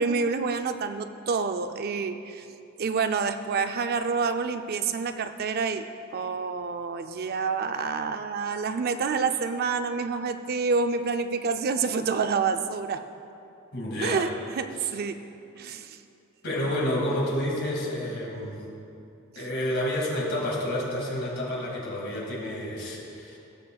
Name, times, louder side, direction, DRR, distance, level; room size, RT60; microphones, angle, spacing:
voice 1, 0.0-2.4 2.8-5.9 6.1-13.0 14.0-15.2 15.6-16.0 19.4-19.5, right 5 dB, 45° right, 9 dB, 0.4 m, -28 dB
voice 2, 13.7-14.2 16.4-18.6 19.3-23.4, left 1 dB, 55° left, -3 dB, 2.1 m, -29 dB
17.5 x 6.7 x 2.3 m, 2.7 s
head